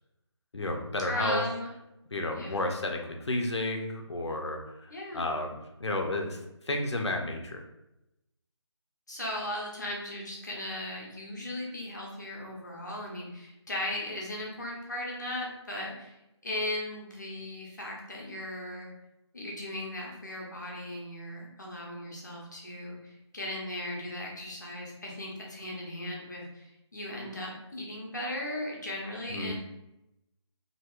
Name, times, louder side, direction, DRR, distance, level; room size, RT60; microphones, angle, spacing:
voice 1, 0.5-1.4 2.1-4.6 5.1-6.4 6.7-7.6 29.3-29.5, left 2 dB, 65° left, 3 dB, 0.7 m, -31 dB
voice 2, 1.1-1.7 2.3-2.7 4.9-5.3 9.1-16.2 16.4-18.9 19.3-29.5, left 1 dB, 40° left, -2 dB, 0.9 m, -37 dB
4.4 x 2.9 x 2.4 m, 0.90 s
figure-of-eight pair, 175°, 15 cm